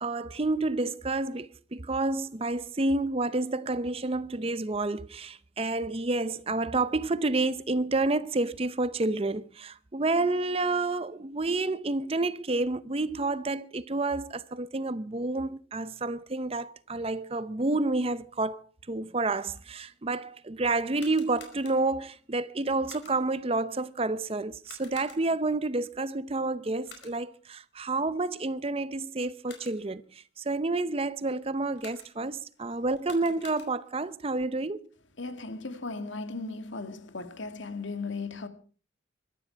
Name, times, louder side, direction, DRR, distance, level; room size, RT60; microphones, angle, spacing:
voice 1, 0.0-34.9, right 2 dB, 30° right, 0.7 m, -29 dB
sound 1, 20.8-22.1 22.9-23.4 24.6-25.5 26.8-27.4 29.2-30.0 31.8-32.4 32.9-34.0, left 6 dB, 60° left, 4.8 m, -51 dB
voice 2, 35.2-38.5, left 3 dB, 80° left, 2.0 m, -36 dB
22.0 x 14.0 x 4.6 m
head